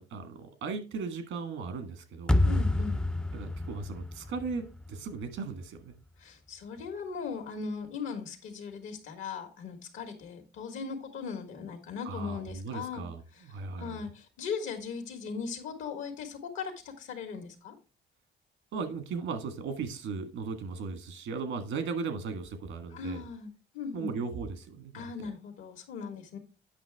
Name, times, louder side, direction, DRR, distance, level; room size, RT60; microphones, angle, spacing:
voice 1, 0.0-2.4 3.3-5.9 12.0-14.0 18.7-23.2 23.9-25.3, right 5 dB, 85° right, 1.5 m, -37 dB
sound 1, 2.3-5.4, left 1 dB, 5° left, 0.3 m, -29 dB
voice 2, 2.4-3.0 6.2-13.0 13.3-13.4 13.8-17.7 22.9-24.1 24.9-26.4, left 5 dB, 90° left, 1.7 m, -38 dB
8.6 x 5.9 x 3.4 m
cardioid pair, 90°, 20 cm